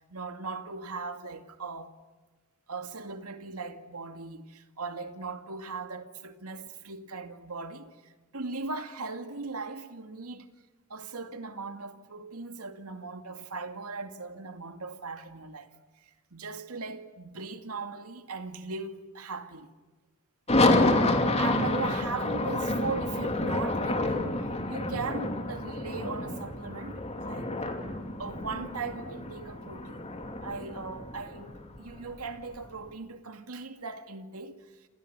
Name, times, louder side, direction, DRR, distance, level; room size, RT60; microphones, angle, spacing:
voice 1, 0.1-1.9 2.7-10.5 10.9-15.7 16.3-19.7 21.0-24.4 24.7-27.5 28.2-30.1 30.4-34.6, right 4 dB, 85° right, 2.3 m, -39 dB
sound 1, 20.5-32.7, left 2 dB, 30° left, 2.7 m, -29 dB
28.5 x 27.5 x 6.9 m
head